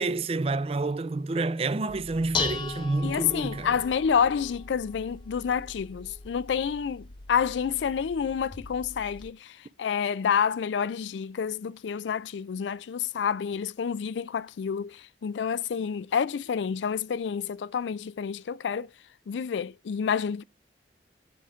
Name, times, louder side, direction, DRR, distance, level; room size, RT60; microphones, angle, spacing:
voice 1, 0.0-3.7, right 3 dB, 35° right, 0.4 m, -28 dB
Dishes pots and pans, 1.9-9.3, left 5 dB, 25° left, 0.6 m, -38 dB
voice 2, 3.0-18.9 19.3-20.4, left 7 dB, 85° left, 0.4 m, -29 dB
7.9 x 6.2 x 5.0 m
head